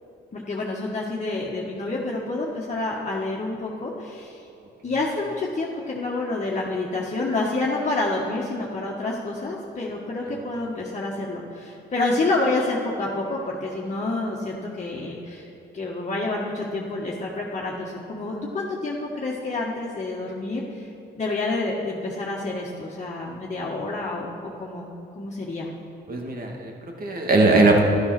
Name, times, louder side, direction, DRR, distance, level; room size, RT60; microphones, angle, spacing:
voice 1, 0.3-4.4 4.8-15.5 15.7-20.9 21.2-24.3 24.6-24.9 25.2-25.7, left 2 dB, 35° left, -4 dB, 1.8 m, -28 dB
voice 2, 26.1-27.8, right 2 dB, 45° right, 1 dB, 2.4 m, -20 dB
12.5 x 12.0 x 6.1 m, 2.8 s
cardioid pair, 90°, 20 cm